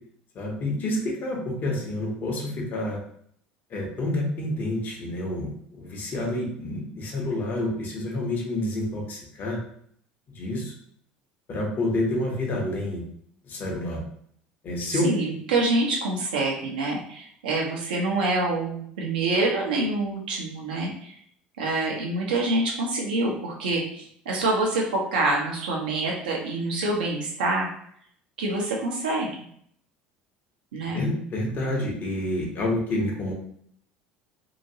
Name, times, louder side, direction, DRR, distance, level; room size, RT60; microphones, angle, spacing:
voice 1, 0.3-3.0 3.7-9.6 10.3-10.7 11.5-13.0 13.4-14.0 14.6-15.1 30.9-33.3, left 1 dB, 40° left, -1 dB, 1.0 m, -28 dB
voice 2, 15.0-21.1 21.6-27.7 28.4-29.3 30.7-31.0, right 2 dB, 75° right, -2 dB, 0.7 m, -26 dB
2.8 x 2.6 x 2.7 m, 0.66 s
figure-of-eight pair, 65°, 5 cm